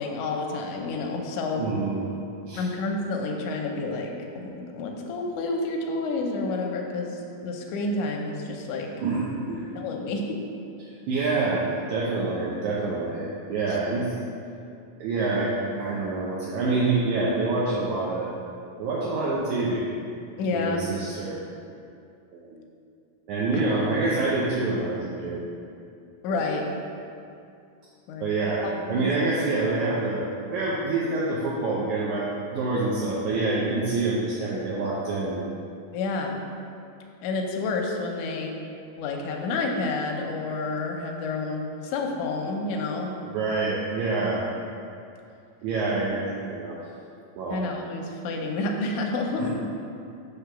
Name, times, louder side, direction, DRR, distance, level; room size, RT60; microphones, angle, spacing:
voice 1, 0.0-1.7 2.5-8.9 9.7-10.4 20.4-20.9 23.5-23.6 26.2-26.6 28.1-28.3 28.6-29.2 35.9-36.3 37.2-38.5 39.0-43.1 47.5-49.5, left 3 dB, 80° left, 1 dB, 1.8 m, -29 dB
voice 2, 1.6-2.0 2.5-2.6 9.0-9.6 10.8-11.6 11.9-14.1 15.0-15.5 15.8-18.3 18.8-19.9 20.5-21.4 22.3-22.6 23.3-25.4 26.3-26.4 28.2-30.2 30.5-35.4 43.2-44.4 45.6-46.8 47.3-47.6 49.3-49.5, right 3 dB, 80° right, -6 dB, 1.7 m, -26 dB
6.5 x 3.4 x 6.0 m, 2.5 s
omnidirectional pair, 4.2 m